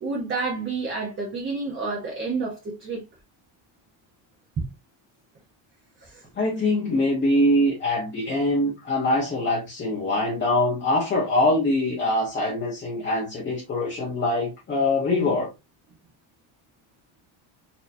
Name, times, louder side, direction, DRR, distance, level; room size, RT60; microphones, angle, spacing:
voice 1, 0.0-3.0 6.0-6.3, right 4 dB, 25° right, 0.8 m, -30 dB
voice 2, 6.4-15.5, left 1 dB, 25° left, 0.9 m, -23 dB
4.3 x 2.8 x 2.6 m
cardioid pair, 160°, 47 cm